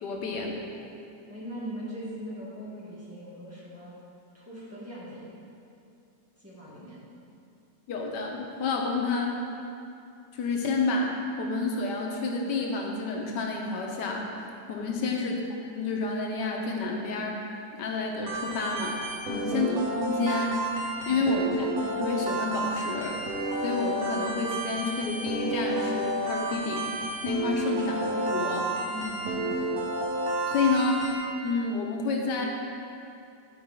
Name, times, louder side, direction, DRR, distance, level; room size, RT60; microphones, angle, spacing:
voice 1, 0.0-0.6 7.9-9.4 10.3-14.2 14.7-15.3 15.7-17.4 17.7-19.0 19.3-20.6 21.1-23.2 23.6-26.9 27.2-28.7 30.5-31.0 31.4-32.5, left 3 dB, 90° left, 0 dB, 1.5 m, -29 dB
voice 2, 1.3-3.9 4.3-5.3 6.4-7.0 15.0-15.2 28.9-29.6, equal, 10° right, -10 dB, 1.8 m, -40 dB
sound 1, 18.2-31.1, right 2 dB, 60° right, 1.4 m, -31 dB
12.0 x 4.8 x 3.5 m, 2.6 s
omnidirectional pair, 1.8 m